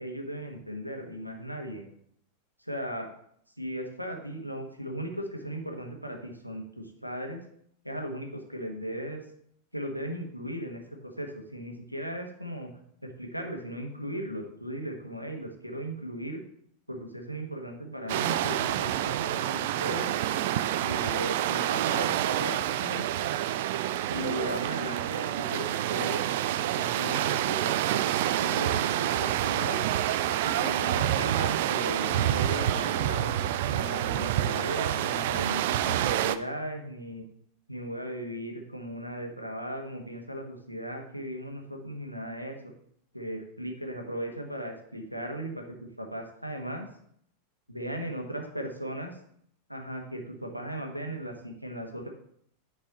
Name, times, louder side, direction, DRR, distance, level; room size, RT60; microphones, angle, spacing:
voice 1, 0.0-1.8 2.6-3.1 3.6-7.4 7.8-9.2 9.7-12.7 13.0-16.4 16.9-20.1 20.8-23.1 24.1-26.3 26.8-29.9 30.4-37.2 37.7-42.6 43.1-45.7 46.0-46.9 47.7-49.1 49.7-52.1, equal, 90° right, 3 dB, 1.3 m, -37 dB
sound 1, 18.1-36.4, right 12 dB, 50° right, 0.4 m, -28 dB
9.1 x 4.8 x 4.1 m, 0.68 s
figure-of-eight pair, 90°, 0 cm